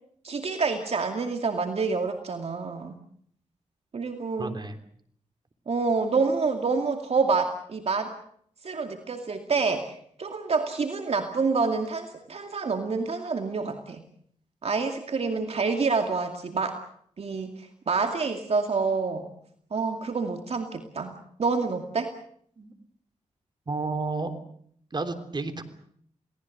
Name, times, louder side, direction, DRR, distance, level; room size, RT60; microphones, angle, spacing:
voice 1, 0.2-3.0 3.9-4.6 5.7-8.2 8.6-14.0 14.6-16.8 17.2-19.3 19.7-22.1, right 4 dB, 55° right, 5 dB, 2.4 m, -27 dB
voice 2, 4.4-4.7 22.6-22.7 23.7-24.3 24.9-25.7, right 3 dB, 35° right, 9 dB, 3.4 m, -31 dB
29.5 x 18.5 x 7.9 m, 0.65 s
cardioid pair, 80°, 12 cm